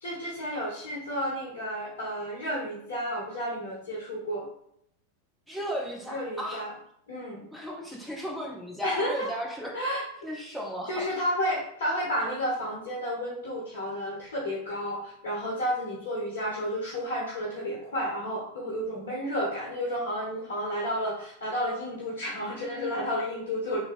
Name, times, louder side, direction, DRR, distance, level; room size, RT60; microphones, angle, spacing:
voice 1, 0.0-4.5 6.1-6.7 7.1-7.5 8.8-9.3 9.7-10.0 10.9-23.8, equal, 60° left, -4 dB, 1.2 m, -31 dB
voice 2, 5.5-6.6 7.5-9.8 10.2-11.1, equal, 5° right, -2 dB, 1.2 m, -35 dB
3.7 x 3.0 x 4.3 m, 0.72 s
figure-of-eight pair, 90°, 0 cm